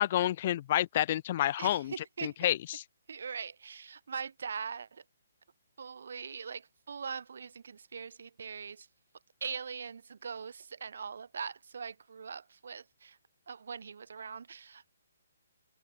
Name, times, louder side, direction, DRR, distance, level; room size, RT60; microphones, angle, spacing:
voice 1, 0.0-1.9 2.2-2.8, left 13 dB, 40° left, 0.4 m, -29 dB
voice 2, 1.6-2.4 3.1-5.0 5.8-8.9 9.4-13.2 13.5-14.9, right 6 dB, 65° right, 2.3 m, -41 dB
hypercardioid pair, 150°, 0 cm